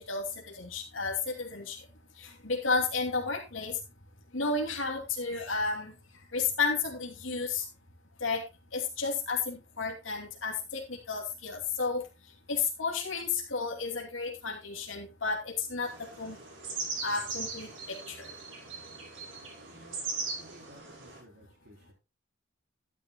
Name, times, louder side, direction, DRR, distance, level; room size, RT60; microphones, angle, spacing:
voice 1, 0.1-1.9 2.2-3.8 4.3-5.9 6.3-7.6 8.2-8.4 8.7-12.0 12.5-16.4 17.0-18.3, left 4 dB, 75° left, 1 dB, 2.8 m, -32 dB
sound 1, 15.8-21.2, right 3 dB, 75° right, 5.5 m, -39 dB
voice 2, 19.7-20.1 20.4-21.9, equal, 55° right, 0 dB, 4.4 m, -55 dB
12.5 x 10.5 x 2.3 m, 0.26 s
head